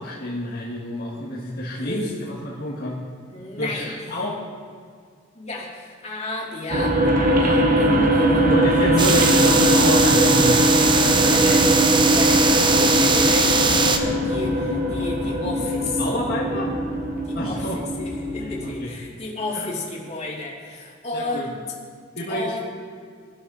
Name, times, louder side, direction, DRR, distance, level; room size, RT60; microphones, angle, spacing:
voice 1, 0.0-3.0 3.6-4.4 8.4-10.6 16.0-16.7 17.4-17.8 18.4-18.9 19.5-19.7 21.1-21.5 22.2-22.6, left 1 dB, 50° left, -6 dB, 1.8 m, -29 dB
voice 2, 1.7-2.1 3.3-3.9 5.3-8.6 10.6-16.0 17.1-21.6 22.3-22.6, left 2 dB, 35° left, -4 dB, 3.1 m, -33 dB
sound 1, 6.7-18.7, equal, 45° right, 1.4 m, -20 dB
sound 2, 9.0-14.0, right 4 dB, 25° right, 0.8 m, -20 dB
21.5 x 12.5 x 4.1 m, 2.1 s
head